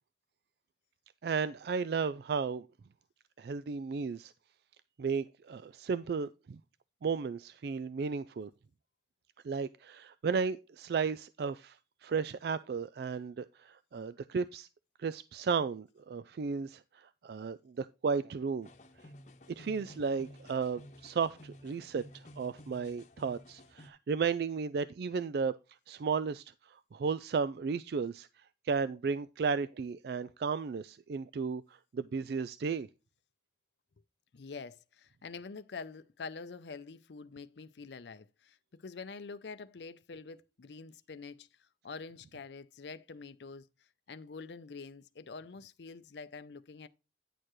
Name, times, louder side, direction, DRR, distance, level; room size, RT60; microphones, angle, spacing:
voice 1, 1.2-2.7 3.4-4.3 5.0-6.6 7.0-8.5 9.4-14.7 15.0-18.7 19.6-25.5 25.9-32.9, right 5 dB, 60° right, 0.3 m, -34 dB
sound 1, 18.6-23.9, left 1 dB, 40° left, 1.0 m, -53 dB
voice 2, 34.3-43.7 44.1-46.9, left 4 dB, 70° left, 0.5 m, -46 dB
9.9 x 6.6 x 3.1 m
head